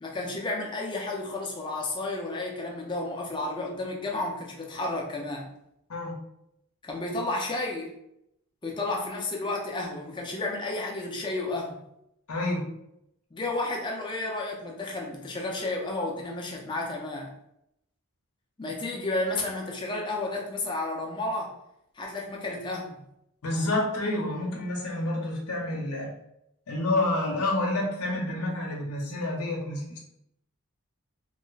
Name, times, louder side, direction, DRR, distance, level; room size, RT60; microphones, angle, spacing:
voice 1, 0.0-5.5 6.8-7.9 8.6-11.8 13.3-17.3 18.6-21.6 21.9-23.0, left 2 dB, 20° left, -1 dB, 0.6 m, -32 dB
voice 2, 12.3-12.7 23.4-26.1 26.7-30.0, left 2 dB, 90° left, -1 dB, 0.8 m, -29 dB
3.1 x 2.1 x 3.9 m, 0.79 s
head